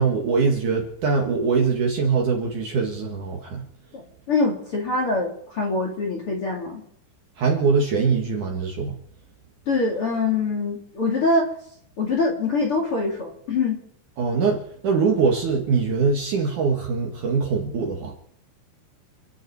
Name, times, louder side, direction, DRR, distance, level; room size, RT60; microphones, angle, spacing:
voice 1, 0.0-3.6 7.4-9.0 14.2-18.1, right 5 dB, 55° right, 0 dB, 2.6 m, -22 dB
voice 2, 3.9-6.8 9.7-11.5 12.0-13.8, left 3 dB, 35° left, -1 dB, 2.6 m, -24 dB
29.0 x 10.0 x 4.8 m, 0.69 s
omnidirectional pair, 5.2 m